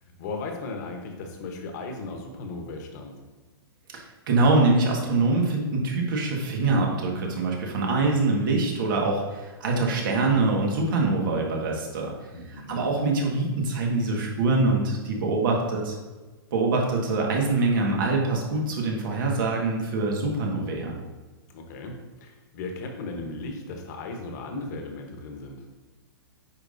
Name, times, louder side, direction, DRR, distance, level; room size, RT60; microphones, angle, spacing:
voice 1, 0.2-3.1 12.3-12.9 21.5-25.6, left 3 dB, 45° left, 3 dB, 1.2 m, -36 dB
voice 2, 3.9-12.1 12.5-16.0 16.5-20.9, right 3 dB, 55° right, 0 dB, 1.7 m, -24 dB
9.3 x 5.2 x 2.7 m, 1.3 s
hypercardioid pair, 155°, 13 cm